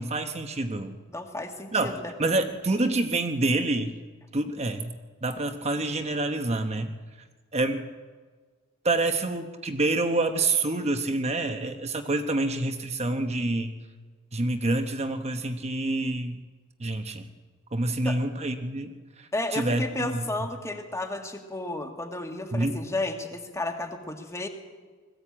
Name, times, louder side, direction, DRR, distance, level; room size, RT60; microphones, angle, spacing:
voice 1, 0.0-1.0 1.7-3.9 4.3-6.9 7.5-7.9 8.8-13.7 14.3-16.4 16.8-17.3 17.7-20.3 22.5-22.9, right 2 dB, 30° right, 7 dB, 1.0 m, -27 dB
voice 2, 1.1-2.1 18.0-18.2 19.3-24.5, left 2 dB, 15° left, 4 dB, 1.9 m, -32 dB
20.5 x 15.0 x 8.8 m, 1.5 s
head